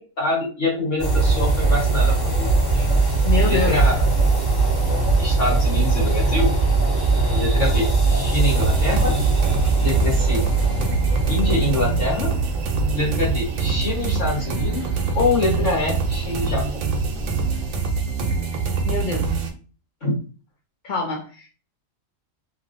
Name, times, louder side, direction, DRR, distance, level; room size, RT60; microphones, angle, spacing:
voice 1, 0.0-2.9 3.4-4.0 5.2-6.5 7.3-9.1 9.8-10.4 11.3-12.3 12.9-14.8 15.1-16.6 20.0-20.2, left 2 dB, 70° left, -4 dB, 1.5 m, -25 dB
sound 1, 1.0-17.8, right 3 dB, 20° left, 1.6 m, -21 dB
voice 2, 3.2-3.8 18.9-19.3 20.8-21.5, left 3 dB, 50° left, -3 dB, 0.6 m, -25 dB
sound 2, 8.5-19.5, right 4 dB, 90° right, 1.1 m, -25 dB
3.0 x 2.6 x 2.5 m, 0.36 s
omnidirectional pair, 1.4 m